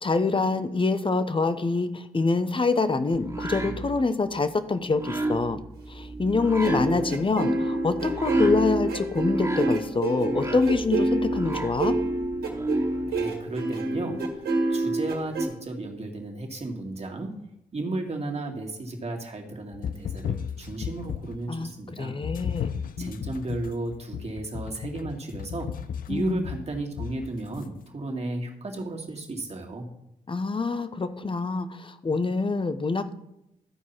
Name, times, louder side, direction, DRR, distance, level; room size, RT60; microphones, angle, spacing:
voice 1, 0.0-5.6 5.9-11.9 21.5-22.7 23.0-23.2 26.1-26.4 30.3-33.1, left 3 dB, 35° left, 11 dB, 1.0 m, -26 dB
sound 1, 3.1-13.1, right 2 dB, 20° right, 1.9 m, -34 dB
sound 2, 6.6-15.4, right 2 dB, 75° right, 2.0 m, -27 dB
voice 2, 12.8-17.4 17.7-22.2 23.0-25.7 26.1-29.9, right 2 dB, 40° right, 1 dB, 2.3 m, -34 dB
sound 3, 19.7-21.5 22.2-27.7, left 8 dB, 60° left, 0.5 m, -35 dB
13.0 x 4.7 x 5.8 m, 0.85 s
hypercardioid pair, 40°, 16 cm